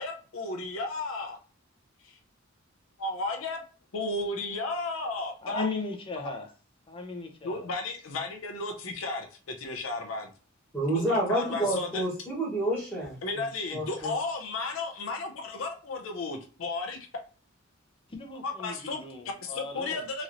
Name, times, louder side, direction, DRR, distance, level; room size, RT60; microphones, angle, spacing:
voice 1, 0.0-1.4 2.0-2.2 3.0-3.6 3.9-5.7 7.4-10.3 10.9-12.1 13.2-17.0 18.4-19.1 19.4-20.2, left 3 dB, 75° left, 0.6 m, -34 dB
voice 2, 5.4-6.5 6.9-7.7 18.1-20.1, left 3 dB, 25° left, 0.7 m, -37 dB
voice 3, 10.7-13.4 13.7-14.1, right 1 dB, 10° left, 1.1 m, -29 dB
3.0 x 2.8 x 2.6 m
head